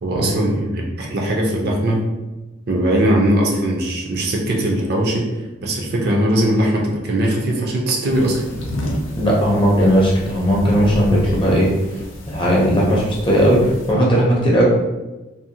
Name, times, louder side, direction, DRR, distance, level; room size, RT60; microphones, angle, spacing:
voice 1, 0.0-2.1 2.7-5.3 5.6-8.4, right 1 dB, 50° right, -1 dB, 0.4 m, -20 dB
water on glass, 8.1-13.9, equal, 75° left, 0.5 m, -31 dB
voice 2, 9.1-12.0 12.3-14.6, equal, 25° left, -4 dB, 0.5 m, -17 dB
2.6 x 2.0 x 2.6 m, 1.1 s
head